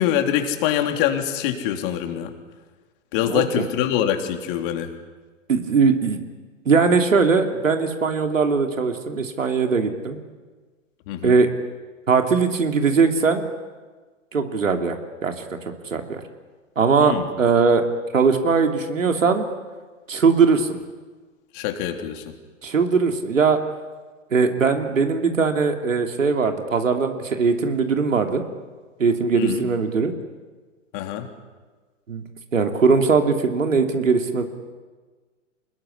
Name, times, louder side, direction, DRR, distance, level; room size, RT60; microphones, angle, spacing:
voice 1, 0.0-2.3 3.1-4.9 11.1-11.4 17.0-17.3 21.5-22.3 29.3-29.7 30.9-31.3, left 10 dB, 45° left, 5 dB, 3.5 m, -24 dB
voice 2, 3.2-3.6 5.5-6.2 6.6-10.2 11.2-11.5 12.1-13.4 14.3-14.9 15.2-15.6 15.9-16.2 16.8-17.8 18.1-19.5 20.1-20.8 22.6-23.6 24.3-28.4 29.0-30.1 32.1-32.2 32.5-34.4, right 5 dB, 80° right, 5 dB, 3.0 m, -20 dB
26.5 x 21.0 x 10.0 m, 1.4 s
figure-of-eight pair, 110°, 38 cm